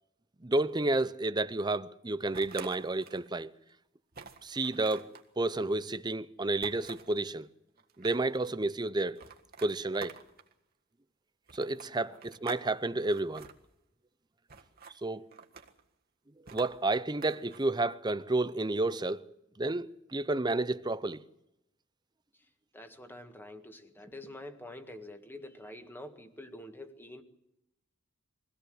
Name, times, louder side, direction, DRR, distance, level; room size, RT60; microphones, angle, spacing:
voice 1, 0.4-3.5 4.4-7.5 8.0-9.2 9.6-10.2 11.5-13.5 15.0-15.3 16.5-21.2, right 2 dB, 20° right, 0.7 m, -31 dB
sound 1, 2.3-3.3 3.7-3.8 4.1-5.3 6.6-7.2 7.8-8.4 9.2-10.5 11.5-12.7 12.9-13.5 14.5-15.0 15.3-15.8 16.5-17.7, right 5 dB, 45° right, 1.7 m, -47 dB
voice 2, 22.7-27.2, left 1 dB, 10° left, 1.8 m, -47 dB
23.0 x 17.0 x 7.8 m
head